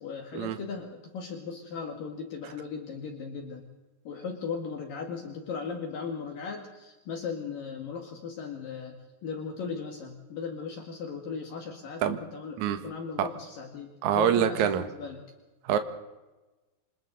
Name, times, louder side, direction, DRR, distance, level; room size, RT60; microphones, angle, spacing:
voice 1, 0.0-3.6 4.0-9.0 9.2-15.2, left 5 dB, 60° left, 2 dB, 3.3 m, -37 dB
voice 2, 14.0-14.8 15.6-15.8, right 9 dB, 60° right, 7 dB, 2.4 m, -25 dB
28.0 x 27.0 x 4.1 m, 1.1 s
omnidirectional pair, 4.6 m